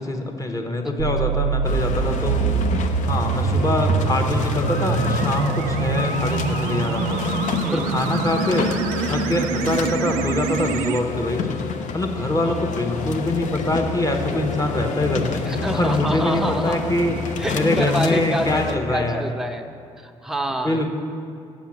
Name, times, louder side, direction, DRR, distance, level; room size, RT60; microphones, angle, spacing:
voice 1, 0.0-2.4 3.0-8.7 9.1-11.6 11.9-19.3 20.6-20.9, left 1 dB, 20° left, 4 dB, 1.1 m, -24 dB
voice 2, 0.8-1.3 7.6-8.0 12.4-12.6 15.5-16.8 17.4-19.7 20.0-20.9, equal, ahead, 5 dB, 0.7 m, -28 dB
sound 1, 1.0-11.0, right 6 dB, 70° right, 0.4 m, -25 dB
sound 2, 1.6-18.8, left 6 dB, 50° left, 0.7 m, -28 dB
7.4 x 7.3 x 7.1 m, 2.4 s
figure-of-eight pair, 40°, 16 cm